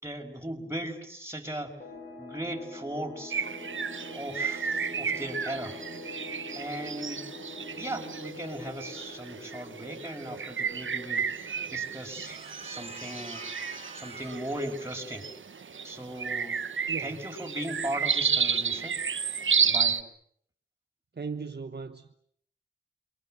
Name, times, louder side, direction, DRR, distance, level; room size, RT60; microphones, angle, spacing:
voice 1, 0.0-1.8 2.2-3.4 4.1-5.8 6.5-7.2 7.8-11.4 11.7-13.4 13.9-15.3 15.8-16.6 17.0-19.0 19.6-20.0, right 1 dB, 15° right, 6.0 m, -37 dB
sound 1, 1.8-11.1, left 2 dB, 50° left, 7.8 m, -45 dB
sound 2, 3.3-20.0, right 6 dB, 75° right, 1.2 m, -32 dB
sound 3, 12.2-14.5, right 2 dB, 30° right, 2.3 m, -45 dB
voice 2, 16.9-17.2 21.2-22.1, right 5 dB, 55° right, 1.3 m, -37 dB
29.0 x 24.0 x 7.8 m
wide cardioid pair, 70°, 20 cm